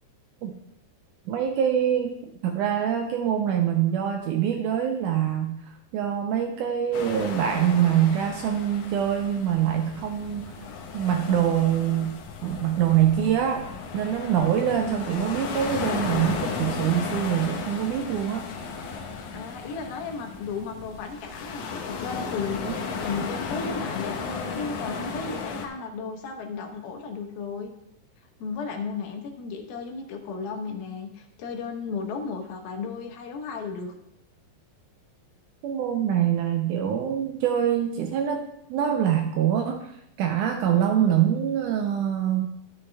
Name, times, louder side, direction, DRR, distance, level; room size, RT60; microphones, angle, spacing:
voice 1, 1.3-10.6 10.9-13.7 13.9-18.5 22.6-22.7 35.6-38.4 38.7-42.5, right 9 dB, 80° right, 4 dB, 1.8 m, -24 dB
sound 1, 6.9-25.7, left 5 dB, 70° left, 2.1 m, -35 dB
voice 2, 19.3-27.7 28.4-33.9, left 5 dB, 85° left, 3 dB, 3.0 m, -34 dB
12.0 x 6.5 x 3.4 m, 0.79 s
omnidirectional pair, 4.1 m